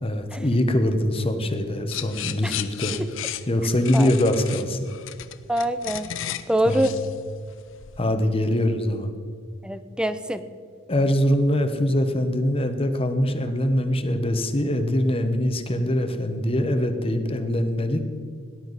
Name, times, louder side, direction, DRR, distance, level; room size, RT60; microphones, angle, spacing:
voice 1, 0.0-3.0 3.5-4.8 6.7-6.9 8.0-9.1 10.9-18.0, left 1 dB, 25° left, 7 dB, 1.0 m, -23 dB
sound 1, 1.9-8.0, left 11 dB, 60° left, 0.5 m, -34 dB
voice 2, 5.5-6.1 6.5-6.9 9.6-10.4, right 1 dB, 5° right, 11 dB, 0.5 m, -24 dB
18.0 x 11.5 x 4.1 m, 2.3 s
head